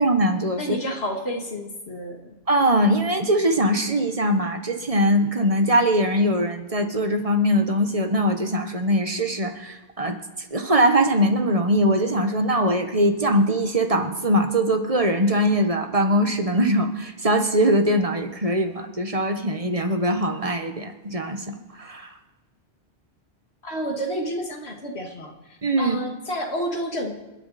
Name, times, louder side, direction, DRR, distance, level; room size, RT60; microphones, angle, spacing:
voice 1, 0.0-0.7 2.5-10.2 10.5-22.1 25.6-26.0, equal, 35° right, 6 dB, 1.3 m, -21 dB
voice 2, 0.6-2.2 23.6-27.1, equal, 70° left, 2 dB, 2.4 m, -30 dB
29.0 x 9.8 x 4.2 m, 1.1 s
omnidirectional pair, 1.1 m